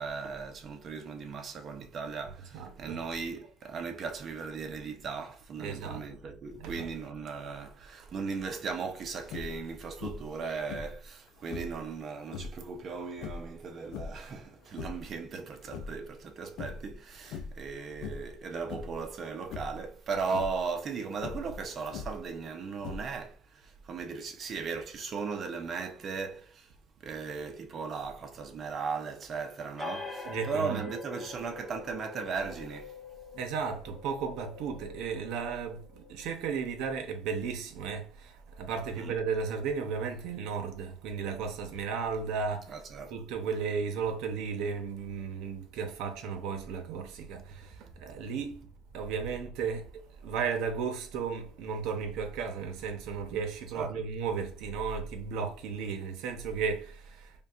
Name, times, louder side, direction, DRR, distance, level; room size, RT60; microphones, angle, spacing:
voice 1, 0.0-26.7 27.0-32.9 39.0-39.1 42.7-43.1 53.7-54.0, right 5 dB, 45° right, 0.6 m, -37 dB
voice 2, 2.4-3.0 5.6-6.1 6.5-6.9 30.2-30.9 33.3-42.8 43.1-48.6 48.9-57.3, right 6 dB, 80° right, 0.7 m, -34 dB
sound 1, 9.2-9.7 10.0-10.4 10.7-11.8 12.2-12.6 13.2-14.3 14.6-15.1 15.5-16.3 16.6-16.9 17.2-17.7 18.0-18.4 18.7-19.0 19.5-19.9 20.2-20.6 21.2-22.3 22.8-23.3, left 5 dB, 75° left, 0.5 m, -41 dB
sound 2, 29.8-37.0, left 4 dB, 15° left, 1.0 m, -45 dB
5.2 x 2.3 x 2.4 m
cardioid pair, 115°, 0 cm